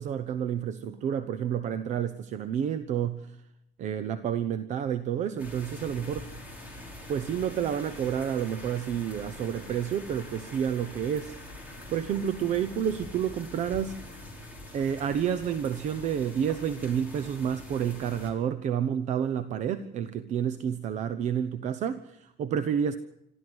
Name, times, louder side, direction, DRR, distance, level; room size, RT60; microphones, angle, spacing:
voice 1, 0.0-3.4 3.8-6.3 7.1-11.4 11.9-14.0 14.7-23.0, right 8 dB, 45° right, 13 dB, 0.9 m, -30 dB
sound 1, 5.4-18.3, left 1 dB, 10° right, 5.0 m, -44 dB
26.0 x 13.5 x 7.9 m, 0.82 s
cardioid pair, 175°, 17 cm